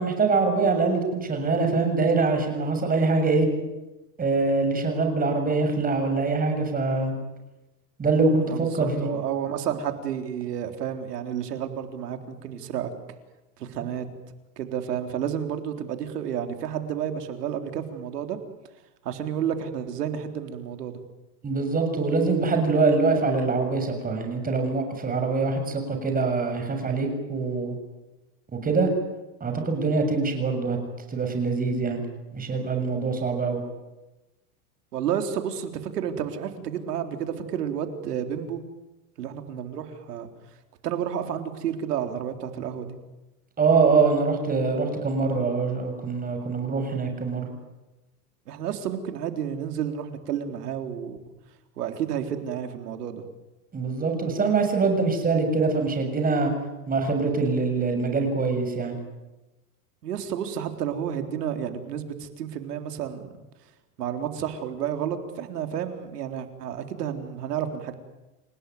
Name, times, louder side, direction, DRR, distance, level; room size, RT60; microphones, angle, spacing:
voice 1, 0.0-3.5 4.2-7.1 8.0-9.1 21.4-27.8 28.5-28.9 29.4-30.8 31.1-32.0 32.3-33.6 43.6-47.5 53.7-56.5 56.9-59.0, right 4 dB, 20° right, 5 dB, 7.0 m, -24 dB
voice 2, 8.4-12.9 13.6-14.1 14.6-18.4 19.0-21.0 34.9-38.6 39.2-40.3 40.8-43.0 48.5-51.2 51.8-53.2 60.0-63.3 64.0-67.9, right 9 dB, 85° right, 6 dB, 4.0 m, -31 dB
29.0 x 18.0 x 9.5 m, 1.0 s
supercardioid pair, 130°, 46 cm